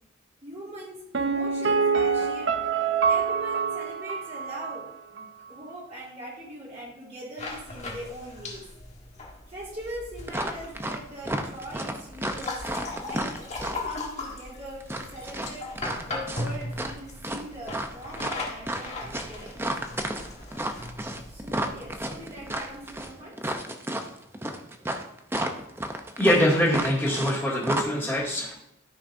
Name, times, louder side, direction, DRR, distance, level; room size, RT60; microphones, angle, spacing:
voice 1, 0.4-2.5 3.0-8.6 9.5-15.7 16.0-19.9 21.3-23.4, right 1 dB, 35° right, -7 dB, 3.1 m, -41 dB
Piano, 1.1-4.9 5.2-5.3, right 5 dB, 65° right, 0.6 m, -26 dB
sound 1, 7.4-23.1, left 2 dB, 35° left, 1.3 m, -39 dB
sound 2, 10.3-11.0 11.2-13.9 14.8-17.0 17.2-27.4 27.6-27.8, right 1 dB, 10° right, 0.6 m, -32 dB
voice 2, 26.2-28.5, equal, 5° left, -12 dB, 2.3 m, -23 dB
13.5 x 6.2 x 2.6 m, 0.80 s
head